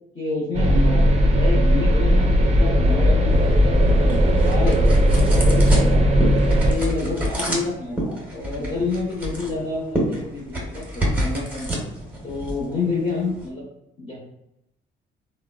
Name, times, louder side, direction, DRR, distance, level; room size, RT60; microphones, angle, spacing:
voice 1, 0.1-6.0 6.6-11.8 12.2-13.7 14.0-14.2, left 3 dB, 35° left, -4 dB, 1.0 m, -29 dB
sound 1, 0.5-6.8, equal, 35° right, 0.4 m, -17 dB
sound 2, 3.3-13.5, right 1 dB, 10° right, 0.9 m, -29 dB
3.4 x 2.1 x 2.3 m, 0.86 s
cardioid pair, 90°, 20 cm